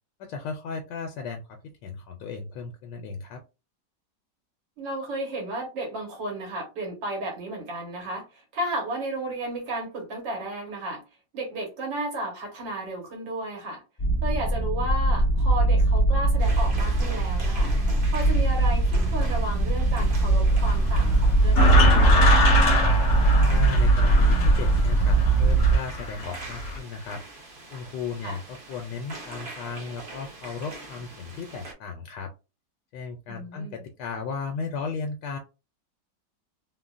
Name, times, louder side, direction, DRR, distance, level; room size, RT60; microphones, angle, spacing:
voice 1, 0.2-3.4 23.4-27.2 27.7-32.3 32.9-35.4, left 5 dB, 80° left, 1.2 m, -35 dB
voice 2, 4.8-11.0 11.3-13.8 14.2-17.7 18.1-22.6 28.2-28.4 33.3-33.8, right 1 dB, 85° right, 2.0 m, -33 dB
sound 1, 14.0-25.8, right 2 dB, 30° left, 0.6 m, -21 dB
sound 2, 16.4-31.7, right 2 dB, 55° right, 0.6 m, -43 dB
sound 3, 20.5-26.8, equal, 60° left, 0.8 m, -24 dB
3.8 x 2.1 x 2.4 m
omnidirectional pair, 1.9 m